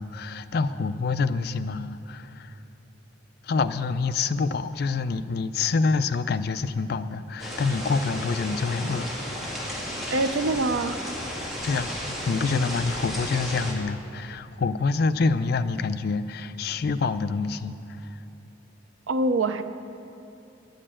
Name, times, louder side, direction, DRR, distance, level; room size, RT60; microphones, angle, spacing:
voice 1, 0.0-2.5 3.4-9.1 11.6-11.9 12.3-17.8, left 4 dB, 55° left, 11 dB, 0.4 m, -26 dB
sound 1, 7.4-13.7, left 1 dB, ahead, 1.7 m, -33 dB
voice 2, 10.1-11.0 19.1-19.6, right 2 dB, 85° right, 10 dB, 0.5 m, -24 dB
9.9 x 6.6 x 8.9 m, 2.8 s
head